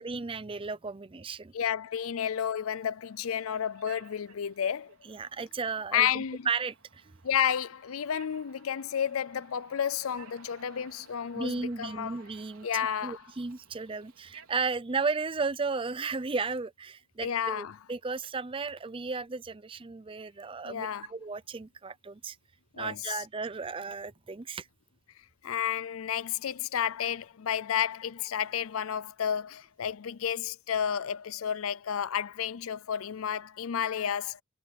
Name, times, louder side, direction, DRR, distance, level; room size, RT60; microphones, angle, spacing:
voice 1, 0.0-1.5 5.0-7.2 11.3-22.4 22.8-24.7, right 4 dB, 25° right, 0.5 m, -34 dB
voice 2, 1.5-4.9 5.9-6.5 7.2-12.2 12.6-13.2 17.2-17.7 20.6-21.1 22.7-23.2 25.4-34.4, left 8 dB, 80° left, 0.5 m, -31 dB
sound 1, 3.0-14.7, right 6 dB, 90° right, 4.4 m, -57 dB
head